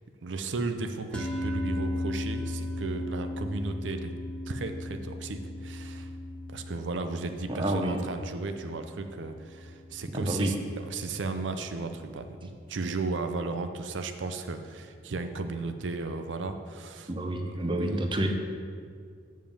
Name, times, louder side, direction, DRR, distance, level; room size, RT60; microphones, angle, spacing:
voice 1, 0.2-4.1 4.5-6.1 6.5-10.5 10.9-17.1 17.4-18.0, right 3 dB, 85° right, 7 dB, 0.6 m, -35 dB
sound 1, 1.1-11.6, left 1 dB, 5° left, 1.1 m, -37 dB
voice 2, 7.5-8.0 10.1-10.5 17.1-18.3, right 1 dB, 25° right, 4 dB, 0.7 m, -29 dB
7.4 x 5.2 x 7.0 m, 2.1 s
head